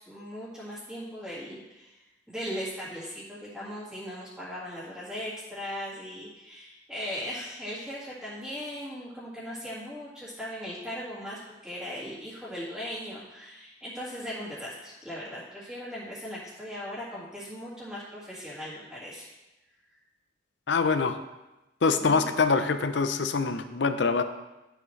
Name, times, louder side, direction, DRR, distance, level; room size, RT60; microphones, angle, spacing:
voice 1, 0.0-2.0 2.3-19.3 22.0-22.3, equal, 5° right, -11 dB, 1.9 m, -38 dB
voice 2, 20.7-21.2 21.8-24.2, left 4 dB, 70° left, 9 dB, 0.6 m, -24 dB
11.5 x 7.5 x 3.2 m, 1.0 s
head